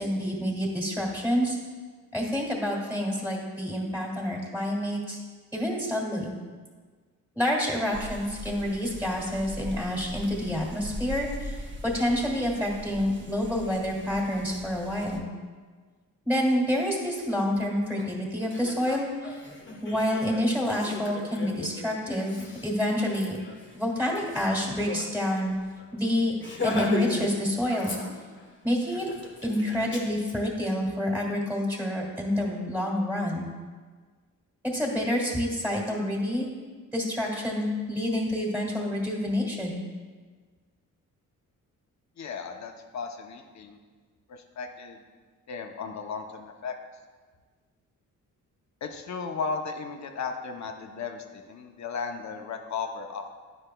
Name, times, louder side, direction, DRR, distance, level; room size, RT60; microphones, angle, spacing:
voice 1, 0.0-1.6 2.1-5.2 5.5-6.3 7.3-15.3 16.3-19.4 19.8-23.4 23.7-25.5 25.9-26.3 26.6-28.0 28.6-29.1 29.4-33.5 34.6-36.5 36.9-39.8, left 1 dB, 5° right, -2 dB, 1.9 m, -28 dB
sound 1, 7.9-15.2, equal, 35° right, 0.8 m, -40 dB
Laughter, 18.0-18.1 18.4-25.0 25.4-25.5 25.8-26.0 26.4-27.3 27.6-28.4 28.9-30.3, left 3 dB, 35° left, 1.1 m, -37 dB
voice 2, 42.2-43.8 44.3-45.0 45.5-46.8 48.8-53.2, left 5 dB, 55° left, 5 dB, 0.7 m, -35 dB
9.9 x 5.2 x 2.2 m, 1.5 s
cardioid pair, 85°, 33 cm